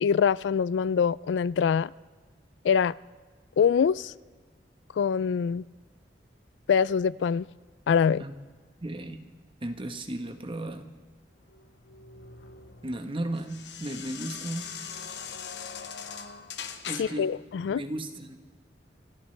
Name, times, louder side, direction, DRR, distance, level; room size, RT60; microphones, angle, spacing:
voice 1, 0.0-1.9 2.6-2.9 3.6-4.1 5.0-5.6 6.7-7.4 7.9-8.2 17.0-17.8, left 7 dB, 85° left, 0.3 m, -24 dB
voice 2, 8.8-9.2 9.6-10.9 12.8-14.7 16.9-17.3 17.7-18.4, right 1 dB, 30° right, 1.1 m, -35 dB
sound 1, 11.5-17.3, left 7 dB, 70° left, 1.1 m, -41 dB
27.5 x 12.0 x 3.3 m
head